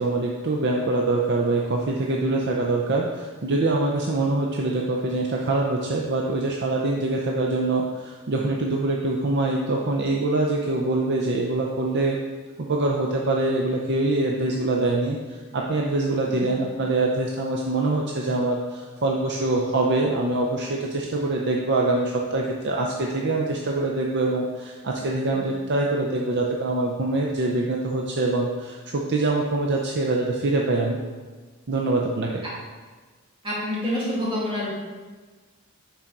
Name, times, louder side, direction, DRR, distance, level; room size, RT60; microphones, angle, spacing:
voice 1, 0.0-12.2 12.6-31.0 31.7-32.3, right 2 dB, 50° right, -1 dB, 0.6 m, -24 dB
voice 2, 33.4-34.7, left 1 dB, 25° right, -7 dB, 2.2 m, -27 dB
10.5 x 4.4 x 3.8 m, 1.4 s
head